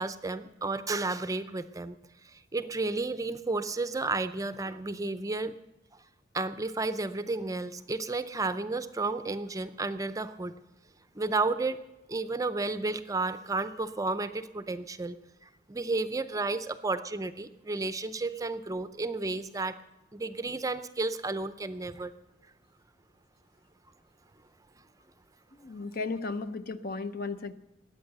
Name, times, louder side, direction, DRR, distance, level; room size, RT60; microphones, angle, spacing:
voice 1, 0.0-2.0 2.2-5.5 6.3-10.5 11.1-11.8 12.1-15.2 15.4-19.8 20.1-22.1, right 3 dB, 20° right, 11 dB, 0.6 m, -32 dB
voice 2, 25.5-27.5, left 3 dB, 50° left, 11 dB, 0.7 m, -35 dB
21.0 x 8.8 x 6.7 m, 0.94 s
head